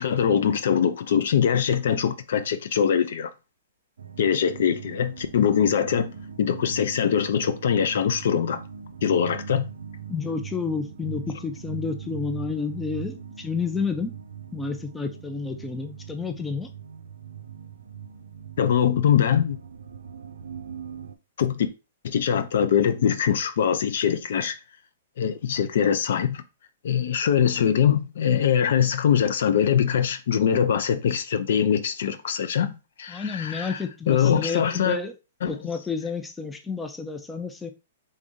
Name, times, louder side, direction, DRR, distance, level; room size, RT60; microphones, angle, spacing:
voice 1, 0.0-3.3 4.2-6.1 6.4-8.6 9.0-9.7 18.6-19.6 21.4-21.7 22.0-24.5 25.2-26.4 26.8-33.8 34.1-35.0 35.4-35.5, left 8 dB, 70° left, 0.5 m, -22 dB
sound 1, 4.0-21.2, right 8 dB, 85° right, 0.4 m, -40 dB
voice 2, 10.1-14.1 14.5-16.7 33.1-35.1 35.4-37.7, left 5 dB, 10° left, 0.5 m, -30 dB
3.6 x 3.5 x 2.6 m
hypercardioid pair, 140°, 0 cm